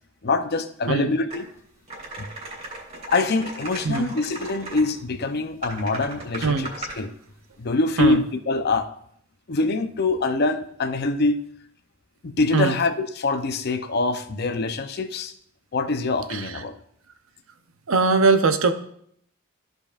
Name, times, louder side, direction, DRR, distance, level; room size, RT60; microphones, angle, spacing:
voice 1, 0.2-1.4 2.2-2.3 3.1-6.7 7.0-7.1 7.6-8.9 9.5-11.4 12.2-15.3 15.7-16.7, left 3 dB, 50° left, 8 dB, 0.6 m, -24 dB
sound 1, 1.3-1.4 1.9-4.8 5.6-7.0, right 2 dB, 35° right, 2.9 m, -37 dB
voice 2, 16.3-16.6 17.9-18.7, right 4 dB, 90° right, 9 dB, 0.7 m, -21 dB
14.0 x 5.3 x 2.4 m, 0.67 s
head